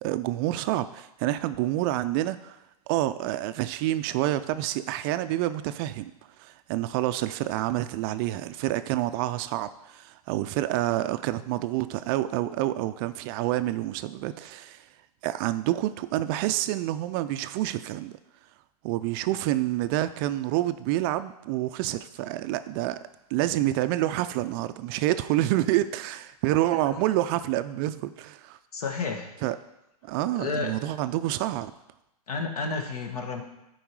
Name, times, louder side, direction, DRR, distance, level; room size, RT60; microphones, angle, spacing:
voice 1, 0.0-2.6 2.9-6.1 6.4-14.9 15.2-18.1 18.8-23.0 23.3-28.6 29.4-29.6 30.0-31.7, right 15 dB, 35° right, 12 dB, 0.4 m, -28 dB
voice 2, 28.7-29.3 30.3-30.7 32.3-33.4, left 4 dB, 70° left, 4 dB, 1.6 m, -31 dB
10.0 x 4.6 x 4.7 m, 0.90 s
hypercardioid pair, 125°, 20 cm